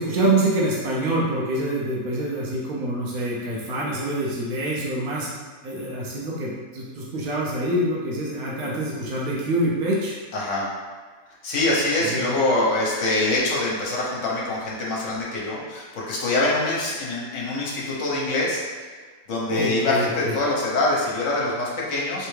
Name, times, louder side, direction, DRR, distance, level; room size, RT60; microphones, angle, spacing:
voice 1, 0.0-5.3 5.6-10.2 12.0-12.3 19.5-20.3, right 1 dB, 85° right, -5 dB, 1.2 m, -26 dB
voice 2, 10.3-10.7 11.4-18.6 19.3-22.3, left 2 dB, 60° left, -4 dB, 1.2 m, -24 dB
3.3 x 3.3 x 3.2 m, 1.5 s
omnidirectional pair, 1.5 m